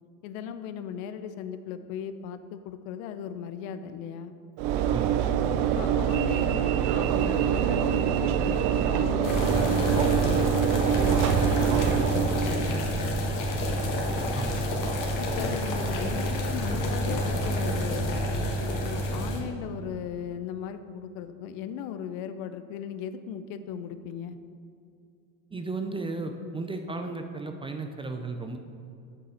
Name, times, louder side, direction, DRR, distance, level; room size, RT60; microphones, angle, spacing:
voice 1, 0.2-4.3 5.6-10.5 10.9-12.7 15.2-18.2 18.6-24.4, left 8 dB, 70° left, 11 dB, 0.6 m, -37 dB
Train / Engine / Alarm, 4.6-12.8, right 9 dB, 60° right, 0.6 m, -25 dB
sound 1, 9.2-19.4, equal, 45° left, 1.6 m, -28 dB
voice 2, 25.5-28.6, right 3 dB, 15° right, 5 dB, 0.4 m, -34 dB
8.3 x 5.4 x 4.3 m, 2.4 s
supercardioid pair, 90°, 42 cm